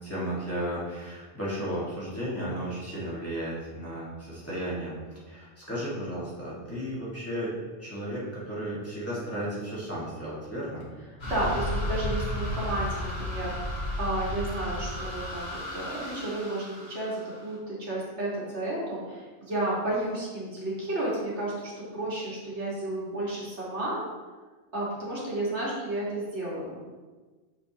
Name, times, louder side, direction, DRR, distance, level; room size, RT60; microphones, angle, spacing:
voice 1, 0.0-10.8, equal, 10° left, -9 dB, 1.7 m, -34 dB
sound 1, 11.2-17.6, left 1 dB, 60° left, 1.8 m, -33 dB
voice 2, 11.2-24.0 24.7-26.7, right 1 dB, 70° right, -7 dB, 2.1 m, -32 dB
7.2 x 5.1 x 2.9 m, 1.4 s
omnidirectional pair, 1.2 m